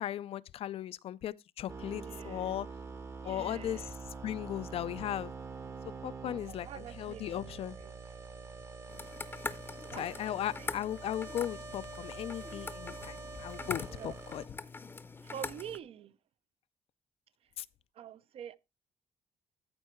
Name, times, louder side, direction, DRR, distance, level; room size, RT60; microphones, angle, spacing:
voice 1, 0.0-2.7 3.2-3.8 4.2-5.3 6.0-7.7 9.9-14.4 17.6-17.7, left 11 dB, 60° left, 0.4 m, -37 dB
sound 1, 1.7-14.5, right 4 dB, 25° right, 0.7 m, -45 dB
voice 2, 1.9-2.6 3.2-4.0 6.3-8.0 9.8-10.7 13.9-14.2 15.2-16.1 17.9-18.6, right 9 dB, 60° right, 0.6 m, -47 dB
sound 2, 8.9-15.8, left 4 dB, 20° left, 0.6 m, -43 dB
13.0 x 4.6 x 4.4 m
cardioid pair, 140°, 11 cm